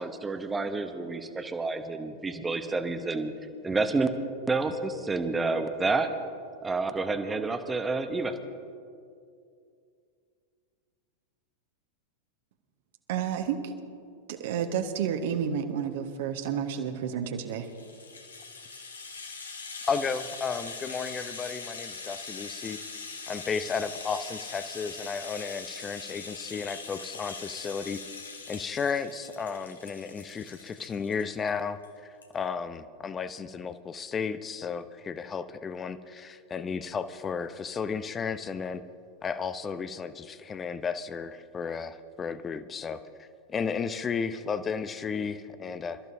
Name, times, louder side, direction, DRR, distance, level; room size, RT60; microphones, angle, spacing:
voice 1, 0.0-3.3 3.6-4.1 4.5-6.1 6.6-8.3, right 3 dB, 10° right, 8 dB, 1.1 m, -29 dB
voice 2, 13.1-13.7 14.3-17.7, right 8 dB, 55° right, 5 dB, 1.4 m, -30 dB
Rattle (instrument), 17.4-31.5 31.8-31.9 32.2-32.3, left 4 dB, 75° left, 1.8 m, -42 dB
voice 3, 19.9-22.8 23.3-28.0 28.5-38.8 39.2-46.0, left 6 dB, 20° left, 13 dB, 0.7 m, -33 dB
27.0 x 14.0 x 2.8 m, 2.4 s
figure-of-eight pair, 90°, 0 cm